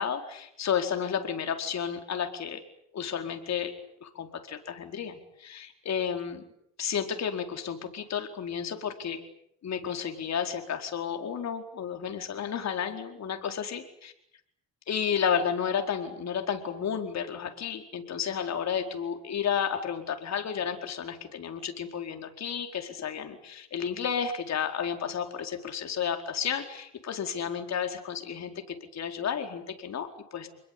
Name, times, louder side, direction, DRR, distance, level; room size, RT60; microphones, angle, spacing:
voice 1, 0.0-2.6 2.9-3.7 4.0-6.4 6.8-9.2 9.6-14.1 14.9-30.5, left 7 dB, 60° left, 5 dB, 4.6 m, -32 dB
29.0 x 21.0 x 8.7 m, 0.74 s
cardioid pair, 90°, 30 cm